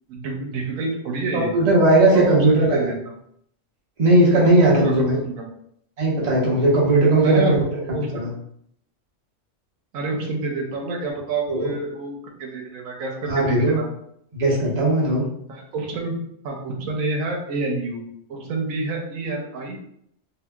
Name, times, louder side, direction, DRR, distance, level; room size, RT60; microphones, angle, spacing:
voice 1, 0.1-1.5 2.1-2.4 2.6-2.9 4.4-5.4 7.1-7.6 7.9-8.3 9.9-13.9 15.5-18.0 18.3-19.9, right 3 dB, 85° right, 0 dB, 1.0 m, -28 dB
voice 2, 1.3-2.9 4.0-5.2 6.0-7.6 8.2-8.3 11.5-11.7 13.3-13.8 14.3-15.2, right 1 dB, 35° right, -5 dB, 0.8 m, -17 dB
2.8 x 2.7 x 2.2 m, 0.70 s
omnidirectional pair, 1.4 m